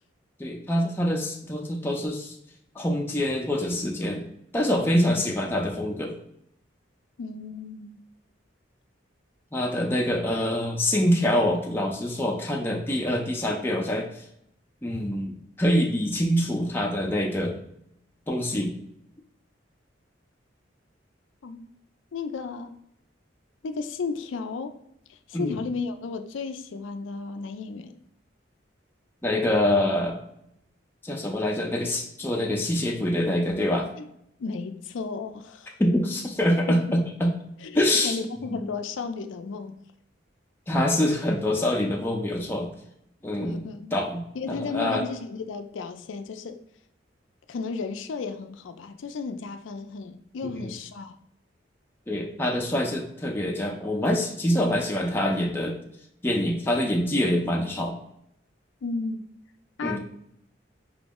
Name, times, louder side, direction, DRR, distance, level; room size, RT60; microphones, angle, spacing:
voice 1, 0.4-2.4 2.8-4.3 4.5-6.1 9.5-14.2 14.8-17.6 18.3-18.7 25.3-25.6 29.2-30.2 31.0-33.9 35.8-37.4 37.7-38.2 38.5-38.6 40.7-42.7 43.2-44.2 44.5-45.0 50.5-50.7 52.1-55.7 56.2-58.0 59.8-60.0, left 1 dB, 10° left, 0.5 m, -25 dB
voice 2, 7.2-8.0 21.4-21.7 22.1-22.7 23.6-24.8 25.1-28.0 34.0-34.1 34.4-35.8 36.7-36.9 37.6-39.8 43.4-44.0 44.3-46.6 47.5-51.1 58.8-59.2 59.8-60.0, left 4 dB, 80° left, 0.4 m, -34 dB
5.0 x 2.0 x 3.5 m
head